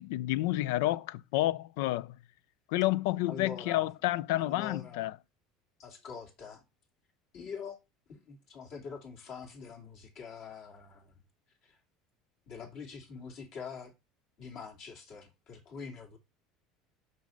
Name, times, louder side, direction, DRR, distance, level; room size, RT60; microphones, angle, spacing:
voice 1, 0.0-2.2 2.7-5.2, left 16 dB, 80° left, 0.3 m, -30 dB
voice 2, 3.3-3.9 4.4-5.1 5.8-6.6 7.3-7.8 8.1-11.2 11.6-11.8 12.5-13.9 14.4-16.2, left 5 dB, 60° left, 2.7 m, -44 dB
6.2 x 5.5 x 3.8 m
supercardioid pair, 125°, 0 cm